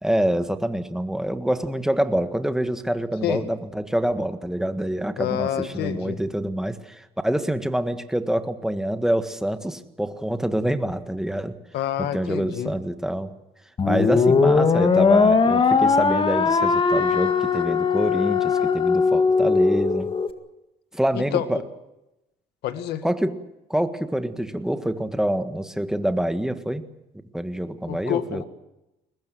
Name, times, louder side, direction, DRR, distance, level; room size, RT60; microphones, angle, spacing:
voice 1, 0.0-11.6 12.0-13.3 13.8-20.1 20.9-21.6 23.0-23.4 23.7-26.8 27.3-28.4, right 1 dB, 5° right, 8 dB, 1.6 m, -26 dB
voice 2, 5.2-6.2 11.7-12.7 21.1-21.6 22.6-23.0 27.9-28.4, left 11 dB, 75° left, 9 dB, 1.9 m, -28 dB
sound 1, 13.8-20.3, left 5 dB, 30° left, 1.9 m, -19 dB
22.5 x 20.0 x 7.7 m, 0.93 s
cardioid pair, 110°, 17 cm